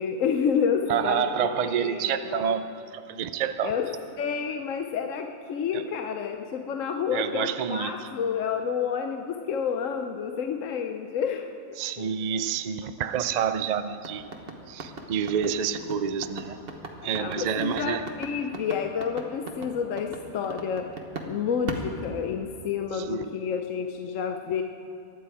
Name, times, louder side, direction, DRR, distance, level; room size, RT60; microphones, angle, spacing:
voice 1, 0.0-2.5 3.6-3.9 4.2-11.5 12.0-12.1 17.2-20.9 21.3-24.6, left 7 dB, 65° left, 4 dB, 1.0 m, -29 dB
voice 2, 0.9-3.7 5.7-5.8 7.1-8.1 11.8-14.3 14.7-16.6 17.0-18.1 22.9-23.3, right 8 dB, 70° right, 11 dB, 0.4 m, -28 dB
sound 1, 14.0-21.3 21.7-22.7, right 3 dB, 40° right, 1.4 m, -37 dB
23.0 x 10.5 x 4.9 m, 2.7 s
omnidirectional pair, 1.5 m